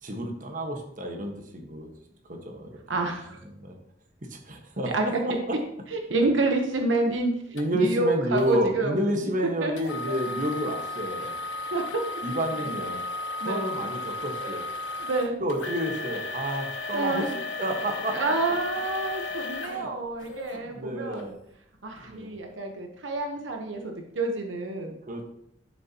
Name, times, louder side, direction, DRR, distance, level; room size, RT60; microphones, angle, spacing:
voice 1, 0.0-1.9 2.3-2.8 3.5-3.7 4.2-5.6 7.5-11.4 12.2-13.0 13.4-14.7 15.4-17.3 17.6-18.3 19.7-19.9 20.5-21.3 22.0-22.3 25.1-25.2, equal, 45° right, 2 dB, 1.4 m, -30 dB
voice 2, 2.9-3.4 4.8-5.1 5.9-9.0 9.6-9.7 11.2-11.3 11.7-12.0 13.4-13.6 14.4-14.6 15.0-15.4 16.9-17.3 18.1-21.3 21.8-25.0, right 3 dB, 80° right, 3 dB, 1.1 m, -28 dB
sound 1, 7.6-7.7 8.4-8.6 9.8-20.6 21.2-21.3 21.9-22.0, left 3 dB, 80° left, 1.1 m, -34 dB
11.5 x 6.9 x 2.9 m, 0.73 s
head